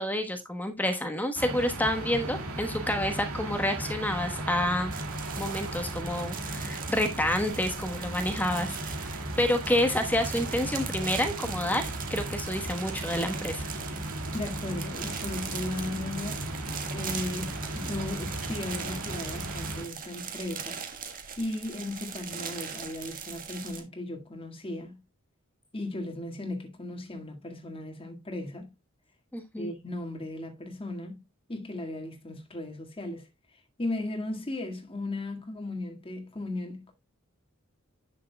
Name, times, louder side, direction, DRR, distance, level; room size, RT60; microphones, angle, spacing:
voice 1, 0.0-4.9 5.4-9.1 9.4-11.8 12.1-13.7 29.3-29.7, left 1 dB, 10° left, 1.1 m, -29 dB
sound 1, 1.3-19.9, right 1 dB, 90° right, 2.4 m, -36 dB
sound 2, 4.9-23.8, right 7 dB, 40° right, 1.7 m, -40 dB
voice 2, 14.1-16.5 16.9-20.8 21.4-25.0 25.7-28.7 29.6-31.2 31.5-36.9, left 2 dB, 25° left, 1.8 m, -36 dB
11.0 x 6.5 x 2.2 m
head